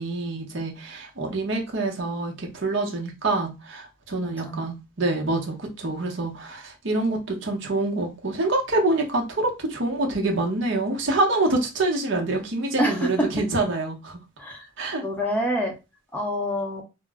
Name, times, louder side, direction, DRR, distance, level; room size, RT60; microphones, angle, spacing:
voice 1, 0.0-14.2 14.8-15.0, right 2 dB, 60° right, 0.8 m, -26 dB
voice 2, 12.8-13.1 14.4-14.6 15.0-15.7 16.1-16.8, equal, 5° left, 0.6 m, -26 dB
2.2 x 2.0 x 3.5 m
head